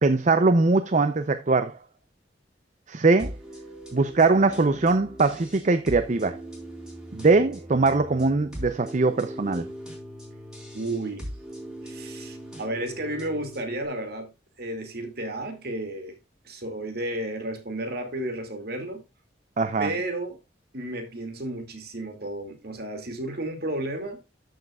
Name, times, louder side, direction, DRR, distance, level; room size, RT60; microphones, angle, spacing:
voice 1, 0.0-1.8 2.9-3.4 3.9-6.4 7.1-9.7 19.6-19.9, right 3 dB, 40° right, 0.6 m, -21 dB
sound 1, 3.2-13.9, right 1 dB, 5° right, 4.3 m, -40 dB
voice 2, 10.7-11.3 11.8-14.3 14.6-16.2 16.4-19.0 19.8-20.4 20.7-24.2, right 1 dB, 55° right, 2.4 m, -32 dB
13.5 x 6.5 x 2.4 m
head